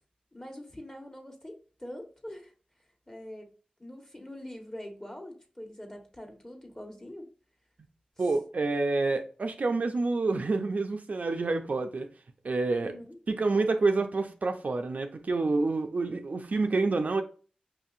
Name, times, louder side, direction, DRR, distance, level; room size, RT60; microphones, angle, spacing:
voice 1, 0.3-1.5 1.8-2.5 3.1-3.5 3.8-7.3 8.2-8.3 12.8-13.1, left 1 dB, 20° left, 1.3 m, -44 dB
voice 2, 8.2-12.1 12.4-12.9 13.3-17.2, right 3 dB, 65° right, 0.4 m, -28 dB
5.5 x 2.7 x 2.4 m
cardioid pair, 40°, 3 cm